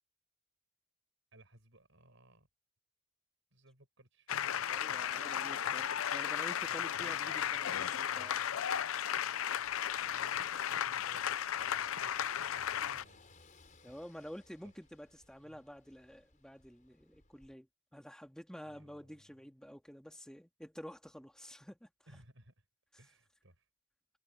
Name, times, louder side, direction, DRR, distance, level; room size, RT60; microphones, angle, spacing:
voice 1, 1.3-2.5 3.5-4.6 5.6-6.0 8.1-8.3 9.9-13.3 13.9-14.0 14.6-14.7 15.4-15.6 18.6-19.3 22.1-22.7 23.0-23.7, right 1 dB, 60° right, 7.4 m, -61 dB
sound 1, 4.3-13.0, left 9 dB, 70° left, 0.5 m, -35 dB
voice 2, 4.6-8.4 13.8-21.9, equal, 5° left, 2.0 m, -50 dB
Car passing by / Engine, 9.6-17.5, left 3 dB, 35° left, 4.6 m, -64 dB
head